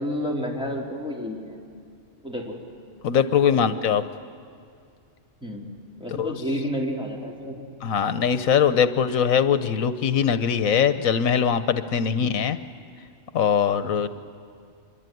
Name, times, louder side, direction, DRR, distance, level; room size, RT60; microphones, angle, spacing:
voice 1, 0.0-1.6 2.2-2.6 3.5-3.8 5.4-5.6 6.0-7.6 12.1-12.3 14.0-14.1, equal, 5° right, -3 dB, 3.8 m, -30 dB
voice 2, 3.0-4.0 6.2-6.3 7.8-12.6 13.3-14.1, left 7 dB, 85° left, 12 dB, 1.3 m, -21 dB
26.0 x 22.5 x 9.3 m, 2.4 s
omnidirectional pair, 1.4 m